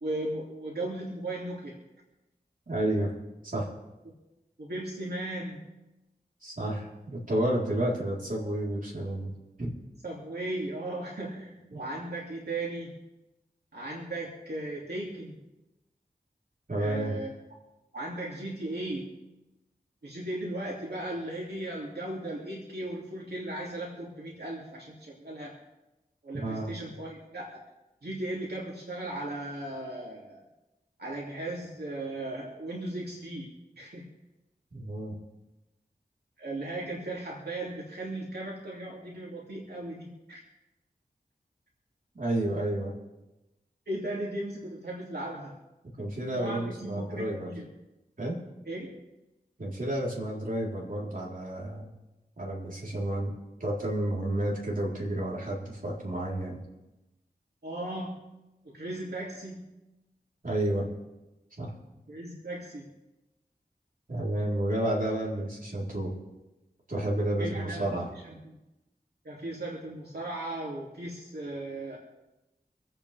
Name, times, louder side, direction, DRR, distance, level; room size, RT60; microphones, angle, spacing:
voice 1, 0.0-1.8 4.6-5.6 10.0-13.0 13.7-15.3 16.7-17.3 17.9-19.1 20.0-25.5 26.2-27.6 28.0-30.4 31.0-34.1 36.4-40.4 43.9-45.5 46.4-47.7 48.7-49.0 57.6-58.2 58.6-59.6 62.1-62.9 67.4-67.8 68.4-68.6 69.2-72.0, right 1 dB, 80° right, -4 dB, 2.6 m, -36 dB
voice 2, 2.7-3.1 3.4-3.7 6.4-9.3 9.6-9.7 11.7-11.8 16.7-17.2 26.4-26.7 34.7-35.2 42.1-42.9 46.0-47.5 48.2-48.4 49.6-51.9 52.4-53.3 53.6-56.6 60.4-60.9 61.6-61.7 64.1-66.1 66.9-68.1, right 1 dB, 55° right, -4 dB, 3.8 m, -31 dB
26.5 x 9.0 x 3.4 m, 1.0 s
wide cardioid pair, 55°, 17 cm